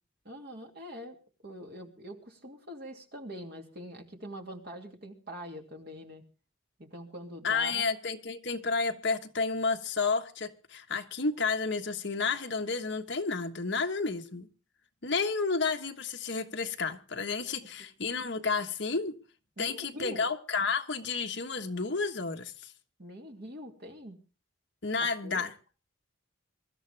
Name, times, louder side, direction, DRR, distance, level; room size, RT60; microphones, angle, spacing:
voice 1, 0.2-1.2 1.4-6.2 6.8-7.9 19.6-20.2 23.0-24.2 25.0-25.4, equal, 50° right, 2.5 m, -44 dB
voice 2, 7.4-14.5 15.0-19.1 19.6-22.7 24.8-25.5, left 4 dB, 55° left, 1.3 m, -31 dB
23.5 x 13.0 x 3.4 m
head